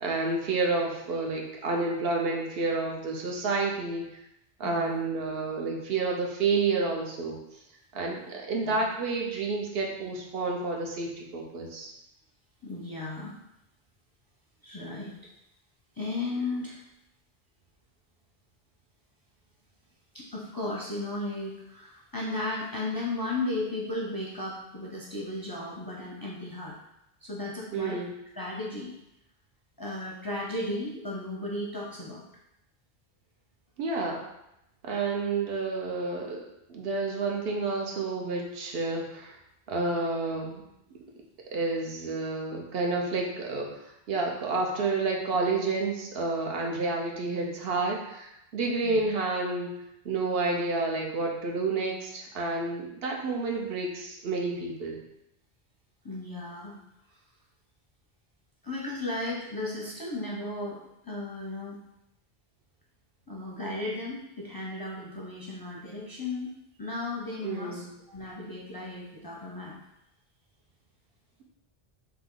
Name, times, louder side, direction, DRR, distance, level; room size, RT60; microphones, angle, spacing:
voice 1, 0.0-4.1 4.6-7.4 7.9-11.9 27.7-28.1 33.8-34.3 34.8-39.4 39.7-40.6 41.5-49.7 50.0-55.0 67.4-67.9, right 3 dB, 70° right, 0 dB, 0.9 m, -30 dB
voice 2, 4.6-5.0 8.6-8.9 12.6-13.4 14.6-15.1 16.0-16.8 20.1-26.8 27.2-28.0 28.4-28.9 29.8-32.2 48.8-49.0 56.0-56.8 58.6-60.8 61.0-61.8 63.3-66.5 66.8-69.7, left 2 dB, 30° left, -4 dB, 0.5 m, -35 dB
3.6 x 2.9 x 3.7 m, 0.83 s
omnidirectional pair, 1.1 m